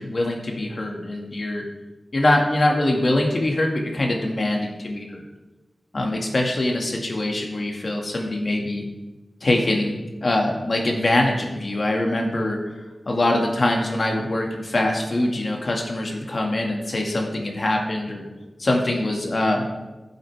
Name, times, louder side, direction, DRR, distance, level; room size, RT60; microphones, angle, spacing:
voice 1, 0.0-1.6 2.1-5.2 5.9-8.8 9.4-12.6 13.1-18.3 18.6-19.6, left 1 dB, 55° left, 1 dB, 2.0 m, -23 dB
15.0 x 7.9 x 3.5 m, 1.1 s
wide cardioid pair, 75°, 0 cm